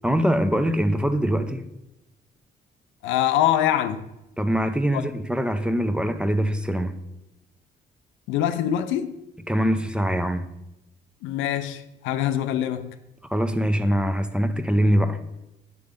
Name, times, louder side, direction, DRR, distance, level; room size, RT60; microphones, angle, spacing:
voice 1, 0.0-1.6 4.4-7.0 9.5-10.5 13.3-15.2, equal, 5° right, 0.6 m, -23 dB
voice 2, 3.0-4.1 4.9-5.1 8.3-9.2 11.2-13.0, left 11 dB, 85° left, 0.4 m, -24 dB
8.0 x 3.4 x 5.0 m
supercardioid pair, 60°, 19 cm